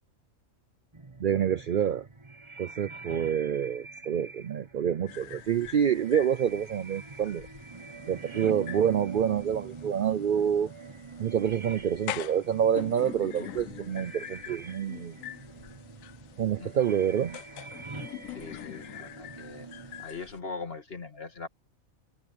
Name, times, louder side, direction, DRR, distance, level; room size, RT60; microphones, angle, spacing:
sound 1, 0.9-20.0, right 5 dB, 20° right, 1.2 m, -44 dB
voice 1, 1.2-2.1 2.6-7.5 8.1-10.7 11.2-15.1 16.4-17.4, right 9 dB, 60° right, 0.5 m, -27 dB
sound 2, 5.1-20.4, left 13 dB, 75° left, 1.0 m, -45 dB
voice 2, 18.3-19.7 20.0-21.5, left 4 dB, 45° left, 2.7 m, -41 dB
omnidirectional pair, 1.4 m